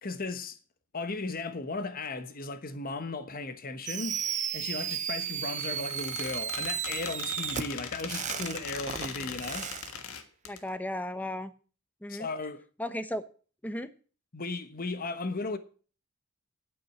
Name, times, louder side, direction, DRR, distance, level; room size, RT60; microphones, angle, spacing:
voice 1, 0.0-0.6 0.9-4.2 4.5-9.7 12.1-12.6 14.3-15.6, left 3 dB, 40° left, 1.2 m, -36 dB
Fireworks, 3.9-9.9, right 9 dB, 35° right, 0.8 m, -34 dB
Squeak, 5.4-10.6, left 6 dB, 70° left, 1.6 m, -40 dB
voice 2, 10.4-11.5 12.0-12.3 12.8-13.2 13.6-13.9, left 1 dB, 5° left, 0.9 m, -35 dB
9.5 x 8.6 x 7.2 m
head